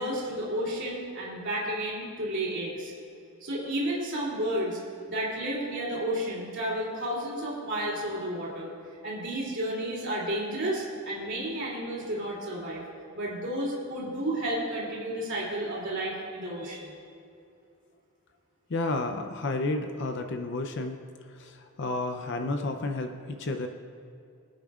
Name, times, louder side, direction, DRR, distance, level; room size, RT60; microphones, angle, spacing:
voice 1, 0.0-2.9 3.4-4.8 5.1-8.7 9.0-12.8 13.1-16.9, right 1 dB, 55° right, -5 dB, 3.0 m, -32 dB
voice 2, 18.7-21.0 21.3-23.7, left 2 dB, 55° left, 6 dB, 0.6 m, -31 dB
25.5 x 8.8 x 2.4 m, 2.5 s
head